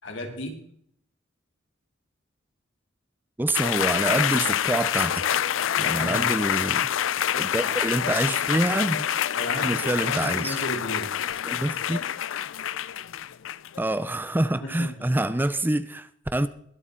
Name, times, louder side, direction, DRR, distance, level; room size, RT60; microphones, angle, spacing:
voice 1, 0.0-0.5 5.8-6.3 7.6-7.8 9.3-11.2 14.6-14.9, left 1 dB, 70° left, 3.1 m, -34 dB
voice 2, 3.4-5.2 5.8-6.9 7.4-9.1 9.6-10.6 11.4-12.0 13.8-16.5, right 1 dB, 10° right, 0.5 m, -26 dB
sound 1, 3.5-13.8, left 10 dB, 90° left, 0.5 m, -26 dB
21.5 x 8.3 x 3.8 m
head